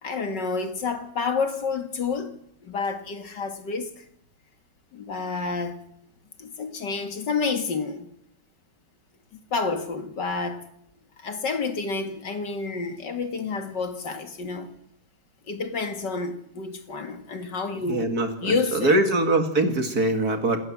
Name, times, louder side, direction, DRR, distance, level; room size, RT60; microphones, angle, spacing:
voice 1, 0.0-2.3 2.6-4.0 4.9-5.8 6.4-8.1 9.5-10.6 11.2-14.7 15.5-18.1 18.4-19.0, left 4 dB, 60° left, 2.3 m, -29 dB
voice 2, 17.8-20.7, right 2 dB, 45° right, 2.6 m, -23 dB
27.5 x 13.0 x 7.5 m
omnidirectional pair, 2.2 m